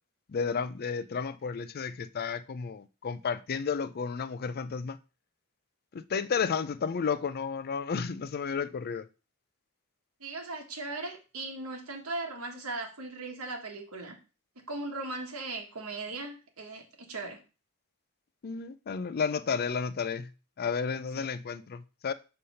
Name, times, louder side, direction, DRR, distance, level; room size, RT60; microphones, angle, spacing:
voice 1, 0.3-5.0 5.9-9.1 18.4-20.3 20.6-22.1, left 6 dB, 45° left, 0.4 m, -32 dB
voice 2, 10.2-14.1 14.7-17.4 21.1-21.2, right 2 dB, 70° right, 1.5 m, -38 dB
5.4 x 3.4 x 5.6 m
head